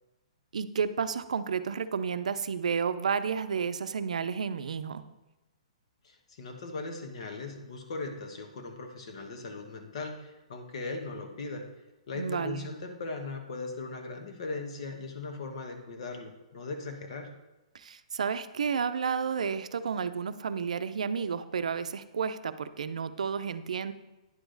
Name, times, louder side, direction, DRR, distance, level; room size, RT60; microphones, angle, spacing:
voice 1, 0.5-5.1 12.1-12.7 17.7-23.9, right 6 dB, 85° right, 12 dB, 0.5 m, -31 dB
voice 2, 6.0-11.7 12.1-17.3, left 3 dB, 60° left, 5 dB, 1.3 m, -39 dB
10.0 x 4.9 x 3.9 m, 1.0 s
hypercardioid pair, 155°, 4 cm